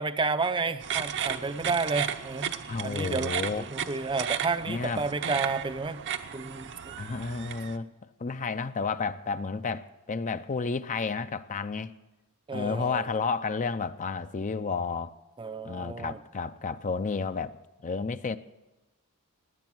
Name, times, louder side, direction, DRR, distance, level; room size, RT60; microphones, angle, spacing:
voice 1, 0.0-2.6 2.8-6.1 6.3-6.9 12.5-13.1 15.4-16.2, right 4 dB, 20° right, 0.5 m, -31 dB
sound 1, 0.8-7.8, right 8 dB, 55° right, 0.8 m, -34 dB
voice 2, 2.7-3.6 4.7-5.0 7.0-7.9 8.2-11.9 12.5-15.1 15.6-17.6 17.8-18.4, left 4 dB, 35° left, 0.5 m, -31 dB
18.0 x 10.0 x 6.1 m
head